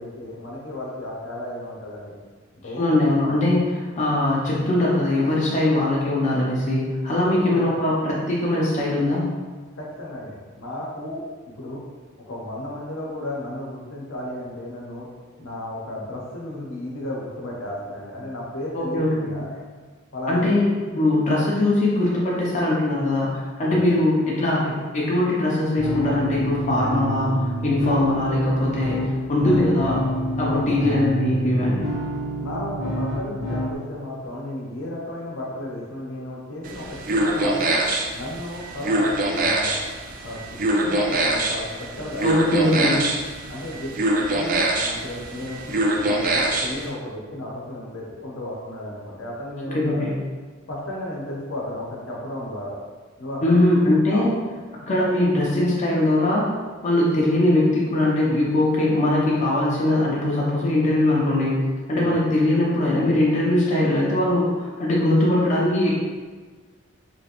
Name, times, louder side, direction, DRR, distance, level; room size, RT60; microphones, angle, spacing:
voice 1, 0.0-2.2 2.6-2.8 7.1-7.8 9.8-11.2 11.6-11.8 12.3-15.1 15.4-19.5 20.1-20.6 23.6-23.8 30.4-30.8 32.4-37.8 38.1-39.8 40.2-42.2 42.7-43.0 43.5-50.0 50.7-52.7 53.2-54.3 61.9-62.2, left 1 dB, 75° left, -4 dB, 0.7 m, -33 dB
voice 2, 2.8-9.2 18.7-19.4 20.3-29.0 29.3-30.0 30.4-31.9 42.2-43.0 49.7-50.1 53.4-54.3 54.8-56.5 56.8-61.6 61.9-65.9, left 1 dB, 35° left, -5 dB, 0.5 m, -21 dB
sound 1, 25.8-33.8, equal, 70° right, 1.3 m, -28 dB
sound 2, 36.6-46.9, right 1 dB, 45° right, 0.4 m, -24 dB
2.9 x 2.4 x 2.8 m, 1.4 s
head